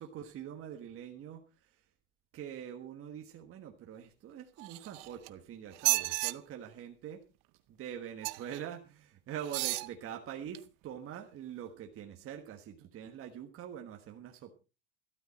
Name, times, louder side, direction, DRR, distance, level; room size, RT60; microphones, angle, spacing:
voice 1, 0.0-1.8 2.3-7.2 7.7-14.5, right 9 dB, 35° right, 3 dB, 1.4 m, -44 dB
sound 1, 4.6-5.3 5.7-6.3 8.2-8.6 9.4-9.9 10.5-10.6, right 22 dB, 55° right, 0.7 m, -32 dB
13.0 x 12.5 x 4.2 m, 0.32 s
cardioid pair, 150°, 39 cm